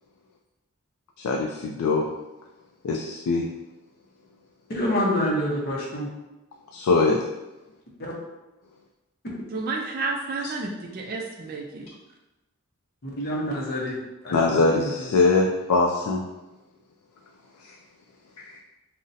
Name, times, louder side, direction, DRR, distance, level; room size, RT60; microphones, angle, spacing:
voice 1, 1.2-2.1 2.8-3.5 6.7-7.2 14.3-16.3 17.6-17.8 18.4-18.6, left 3 dB, 90° left, 0 dB, 0.3 m, -22 dB
voice 2, 4.7-6.1 8.0-8.1 9.2-9.3 13.0-14.0 14.2-15.1, equal, 45° left, -3 dB, 0.6 m, -27 dB
voice 3, 9.5-11.9, right 3 dB, 40° right, 0 dB, 0.3 m, -31 dB
2.6 x 2.1 x 3.9 m, 1.0 s
head